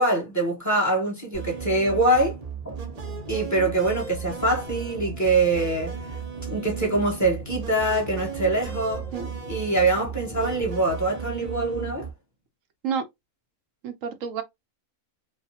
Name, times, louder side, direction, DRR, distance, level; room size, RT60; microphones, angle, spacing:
voice 1, 0.0-2.4 2.6-2.8 3.3-6.0 6.5-9.1 9.5-12.1, right 2 dB, 15° left, 1.2 m, -24 dB
sound 1, 1.3-12.1, right 7 dB, 40° right, 0.6 m, -35 dB
sound 2, 2.9-10.7, left 2 dB, 45° left, 1.4 m, -45 dB
voice 2, 13.8-14.4, right 7 dB, 75° right, 1.1 m, -29 dB
4.8 x 2.3 x 2.8 m
omnidirectional pair, 1.4 m